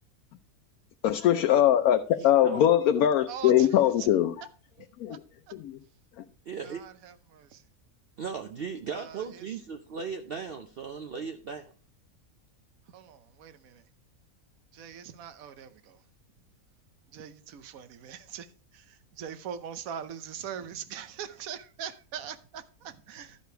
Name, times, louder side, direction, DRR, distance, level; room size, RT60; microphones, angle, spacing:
voice 1, 1.0-4.3 5.0-5.2 5.5-5.8, left 11 dB, 80° left, 1.1 m, -22 dB
voice 2, 2.2-2.7 6.5-6.8 8.2-11.7, right 6 dB, 55° right, 0.7 m, -37 dB
voice 3, 3.3-3.7 4.0-4.1 5.1-5.2 6.6-7.6 8.9-9.2 12.9-13.8 14.7-16.0 17.1-18.5 18.7-23.4, right 8 dB, 70° right, 1.2 m, -41 dB
12.0 x 5.0 x 4.5 m
omnidirectional pair, 1.5 m